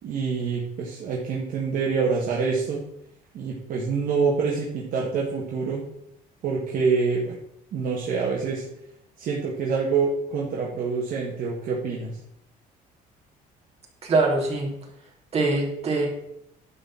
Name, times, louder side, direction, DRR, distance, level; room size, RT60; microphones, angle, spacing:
voice 1, 0.0-2.8 3.3-5.9 6.4-7.4 7.7-8.7 9.2-12.2, right 5 dB, 55° right, -2 dB, 1.9 m, -26 dB
voice 2, 14.0-14.7 15.3-16.1, right 3 dB, 40° right, -1 dB, 3.4 m, -23 dB
11.0 x 4.4 x 7.6 m, 0.77 s
cardioid pair, 140°, 17 cm